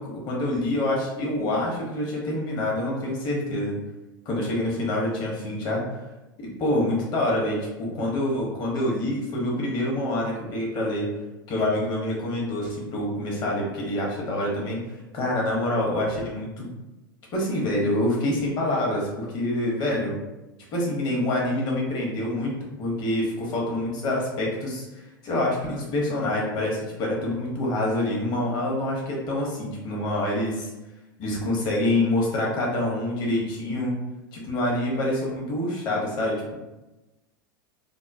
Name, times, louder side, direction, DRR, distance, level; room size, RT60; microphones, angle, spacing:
voice 1, 0.0-3.8 4.2-5.8 6.6-11.1 11.5-14.8 15.1-16.7 17.3-20.2 20.7-24.8 25.2-30.7 31.2-34.0 34.3-36.5, left 1 dB, 40° left, -2 dB, 1.0 m, -26 dB
2.9 x 2.0 x 2.6 m, 1.0 s
figure-of-eight pair, 90°, 11 cm